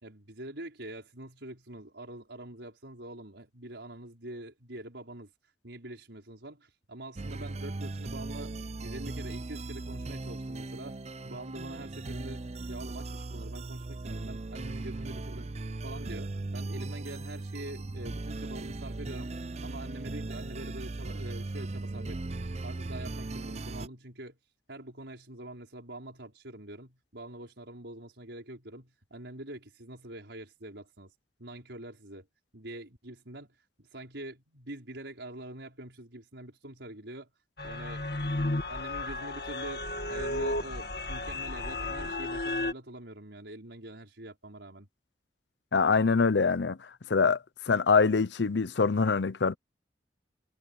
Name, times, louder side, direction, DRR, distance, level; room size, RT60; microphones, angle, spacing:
voice 1, 0.0-8.5 8.8-11.0 11.2-15.5 15.8-19.3 19.6-22.4 22.6-24.4 24.7-31.1 31.4-32.3 32.5-37.3 37.6-38.2 38.7-44.9, right 1 dB, 85° right, 5.3 m, -45 dB
sound 1, 7.2-23.9, right 2 dB, 35° right, 0.6 m, -38 dB
sound 2, 37.6-42.7, left 2 dB, 60° left, 2.0 m, -33 dB
voice 2, 45.7-47.4 47.7-49.5, left 4 dB, 75° left, 0.7 m, -24 dB
head